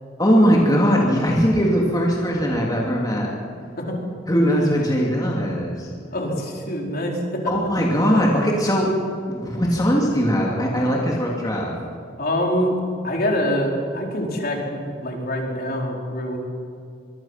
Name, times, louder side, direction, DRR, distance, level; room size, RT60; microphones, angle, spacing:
voice 1, 0.2-3.3 4.3-5.9 7.5-8.9 9.2-11.7, equal, 20° left, -2 dB, 2.7 m, -20 dB
voice 2, 6.1-7.4 12.2-12.7 13.0-16.4, equal, 55° left, 0 dB, 4.4 m, -25 dB
24.0 x 24.0 x 5.9 m, 2.6 s
head